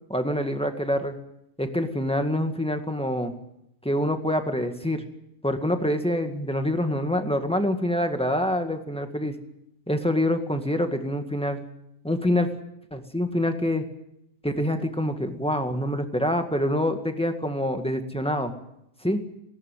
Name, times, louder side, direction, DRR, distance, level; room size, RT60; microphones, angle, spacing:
voice 1, 0.1-1.1 1.6-3.3 3.8-5.0 5.4-9.4 9.9-11.7 12.0-12.5 12.9-13.8 14.4-18.5 19.0-19.2, left 1 dB, 5° left, 6 dB, 1.7 m, -26 dB
19.5 x 16.5 x 9.2 m, 0.80 s
omnidirectional pair, 1.8 m